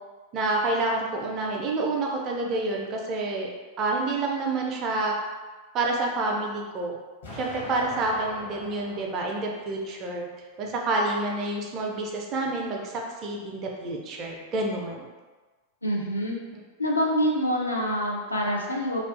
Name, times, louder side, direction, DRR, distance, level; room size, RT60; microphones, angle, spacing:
voice 1, 0.3-3.5 3.8-5.1 5.7-6.9 7.3-10.3 10.6-12.9 13.2-15.1, right 2 dB, 35° right, -1 dB, 0.4 m, -28 dB
Explosion, 7.2-10.2, left 1 dB, 65° left, 0.8 m, -42 dB
voice 2, 15.8-16.4 16.8-19.0, equal, 85° left, -2 dB, 0.4 m, -26 dB
2.4 x 2.3 x 2.3 m, 1.3 s
figure-of-eight pair, 90°, 0 cm